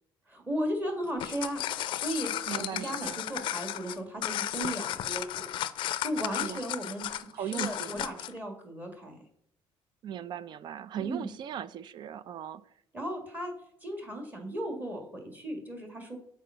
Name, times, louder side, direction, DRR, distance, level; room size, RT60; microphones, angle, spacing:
voice 1, 0.3-1.6 1.9-2.3 2.7-5.5 6.0-9.2 11.0-11.3 12.9-13.5 13.8-16.2, right 1 dB, 15° right, 1.8 m, -36 dB
sound 1, 1.0-8.4, left 12 dB, 55° left, 0.4 m, -34 dB
voice 2, 2.5-3.2 6.4-6.6 7.3-8.1 10.0-12.7, right 9 dB, 45° right, 0.4 m, -38 dB
7.0 x 4.3 x 5.7 m
cardioid pair, 140°, 10 cm